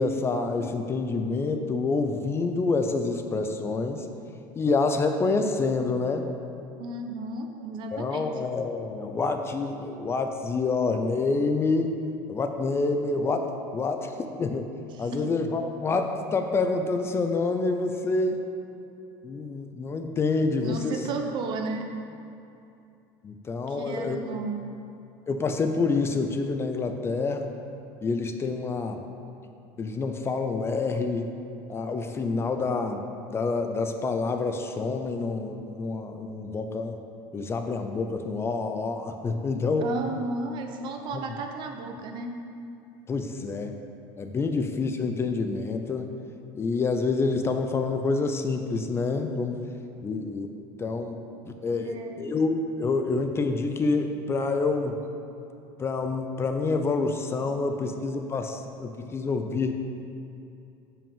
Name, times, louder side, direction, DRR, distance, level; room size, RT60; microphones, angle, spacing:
voice 1, 0.0-4.1 4.5-6.3 7.9-12.0 12.3-14.7 15.0-18.4 19.2-21.0 23.2-24.2 25.3-27.5 28.0-29.0 29.8-31.3 31.7-37.0 37.3-39.9 43.1-43.7 44.2-46.1 46.5-49.6 50.0-50.5 50.8-55.0 55.8-59.7, left 3 dB, 25° left, 6 dB, 0.6 m, -27 dB
voice 2, 6.8-8.4 14.9-15.4 20.6-22.0 23.7-24.8 39.8-42.5 51.7-52.3 57.4-58.6, right 3 dB, 50° right, 4 dB, 1.0 m, -35 dB
7.1 x 5.6 x 7.3 m, 2.6 s
supercardioid pair, 120°, 10 cm